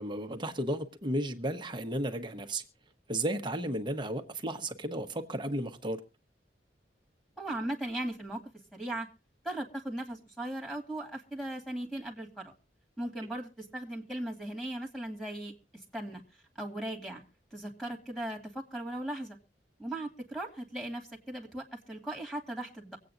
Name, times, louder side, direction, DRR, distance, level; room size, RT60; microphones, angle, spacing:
voice 1, 0.0-2.6 3.1-6.0, right 1 dB, 25° right, 1.1 m, -33 dB
voice 2, 7.4-8.4 8.7-9.1 9.4-12.5 13.0-15.5 15.9-16.2 16.6-17.2 17.5-19.4 19.8-23.0, right 1 dB, ahead, 2.5 m, -38 dB
24.5 x 8.6 x 2.6 m
head